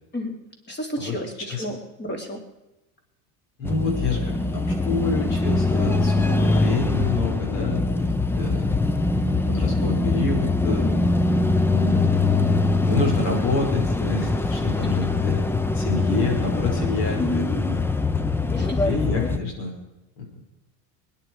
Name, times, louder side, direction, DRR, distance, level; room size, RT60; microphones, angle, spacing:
voice 1, 0.7-2.4 10.8-11.0 17.2-17.5 18.5-18.8, left 1 dB, 20° left, 3 dB, 3.6 m, -30 dB
voice 2, 3.6-8.7 9.2-10.9 11.6-15.4 15.7-17.8 18.4-19.7 20.2-20.4, left 3 dB, 60° left, 1 dB, 5.6 m, -28 dB
sound 1, 3.6-19.4, left 3 dB, 5° left, 0.5 m, -23 dB
20.5 x 10.5 x 4.8 m, 0.96 s
supercardioid pair, 105°, 49 cm